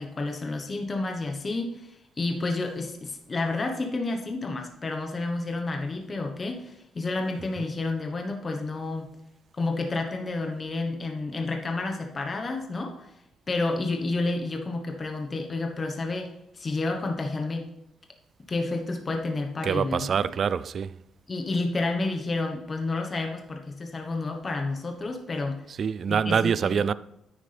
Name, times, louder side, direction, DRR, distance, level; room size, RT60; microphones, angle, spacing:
voice 1, 0.0-9.1 9.5-13.1 13.5-17.7 18.5-20.1 21.3-25.6 26.1-26.9, left 3 dB, 30° left, 1.2 m, -30 dB
voice 2, 19.6-21.0 25.7-26.9, right 7 dB, 45° right, 0.3 m, -25 dB
9.6 x 9.6 x 3.4 m
cardioid pair, 135°, 0 cm